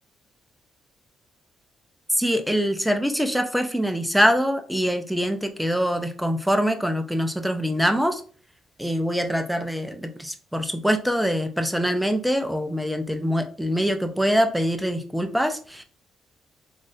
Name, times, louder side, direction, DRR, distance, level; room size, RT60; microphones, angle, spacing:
voice 1, 2.1-8.2 8.8-15.8, equal, ahead, 6 dB, 0.5 m, -24 dB
4.0 x 2.5 x 2.5 m, 0.41 s
cardioid pair, 90°, 0 cm